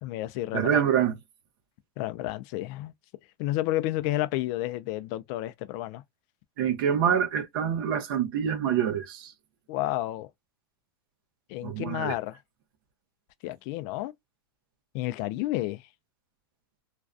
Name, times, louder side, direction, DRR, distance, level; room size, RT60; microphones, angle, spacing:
voice 1, 0.0-0.8 2.0-2.9 3.4-6.0 9.7-10.3 11.5-12.4 13.4-14.1 14.9-15.8, left 16 dB, 45° left, 0.4 m, -31 dB
voice 2, 0.5-1.2 6.6-9.3 11.6-12.2, right 8 dB, 60° right, 0.7 m, -26 dB
2.4 x 2.2 x 2.4 m
supercardioid pair, 140°, 13 cm